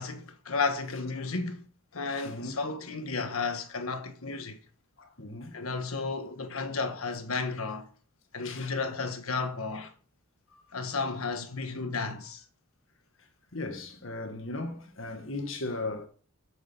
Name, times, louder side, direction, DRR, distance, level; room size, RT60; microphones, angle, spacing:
voice 1, 0.0-1.7 1.9-4.6 5.5-7.9 8.3-9.9 10.7-12.4, left 4 dB, 90° left, 1.4 m, -33 dB
voice 2, 2.1-2.6 5.0-5.6 6.5-6.6 7.3-7.4 8.4-8.7 9.8-9.9 13.5-16.1, left 2 dB, 70° left, 1.8 m, -37 dB
8.6 x 6.6 x 5.9 m
head